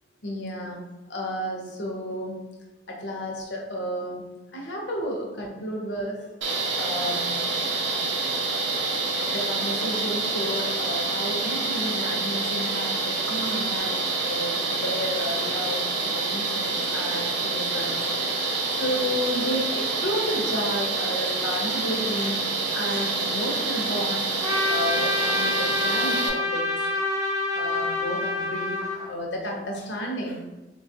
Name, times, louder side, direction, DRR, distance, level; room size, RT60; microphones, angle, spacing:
voice 1, 0.2-0.8 1.1-2.4 2.9-4.3 4.5-6.3 6.7-7.4 9.3-22.5 22.7-24.2 24.7-26.7 27.5-30.4, equal, 85° left, 0 dB, 0.7 m, -32 dB
sound 1, 6.4-26.3, right 3 dB, 80° right, 0.5 m, -27 dB
Trumpet, 24.4-29.1, left 2 dB, 20° right, 0.5 m, -27 dB
3.2 x 2.3 x 2.7 m, 1.1 s
head